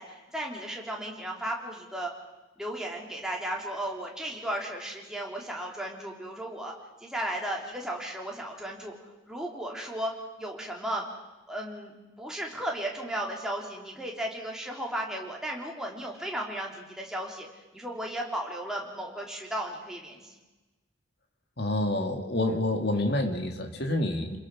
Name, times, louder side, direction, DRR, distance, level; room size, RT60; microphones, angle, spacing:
voice 1, 0.0-2.1 2.6-6.7 7.0-10.1 10.4-11.0 11.5-20.3 22.5-22.6, right 1 dB, 5° right, -1 dB, 3.3 m, -35 dB
voice 2, 21.6-24.4, left 1 dB, 55° left, 4 dB, 2.5 m, -28 dB
30.0 x 21.5 x 6.2 m, 1.1 s
head